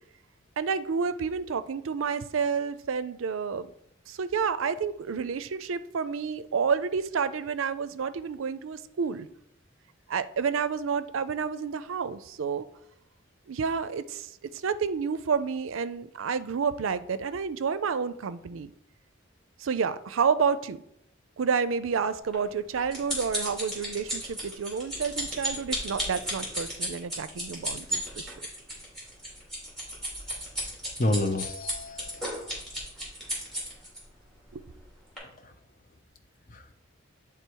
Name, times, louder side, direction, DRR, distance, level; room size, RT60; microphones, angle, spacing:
voice 1, 0.6-3.7 4.1-9.3 10.1-12.6 13.5-14.3 14.6-18.7 19.6-20.8 21.4-28.3 34.5-34.6, right 6 dB, 85° right, 13 dB, 0.5 m, -29 dB
sound 1, 22.3-34.0 34.6-34.8 35.2-35.3, equal, ahead, 2.5 m, -34 dB
voice 2, 31.0-32.4 35.2-35.5 36.5-36.7, left 2 dB, 40° left, 7 dB, 0.7 m, -30 dB
9.5 x 3.6 x 4.6 m, 0.76 s
head